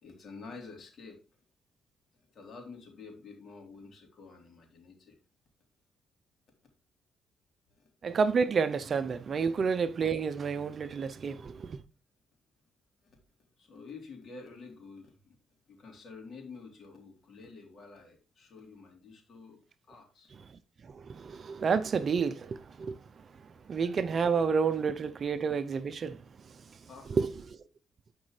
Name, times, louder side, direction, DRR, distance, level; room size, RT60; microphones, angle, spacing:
voice 1, 0.0-1.2 2.3-5.1 7.8-7.9 13.0-13.2 13.6-15.4 15.7-19.6 19.9-20.3 26.8-27.2, left 4 dB, 55° left, 3.6 m, -49 dB
voice 2, 8.0-11.8 20.9-23.0 23.4-26.2 27.1-27.6, right 5 dB, 45° right, 0.5 m, -30 dB
11.5 x 5.2 x 3.2 m
cardioid pair, 90°, 0 cm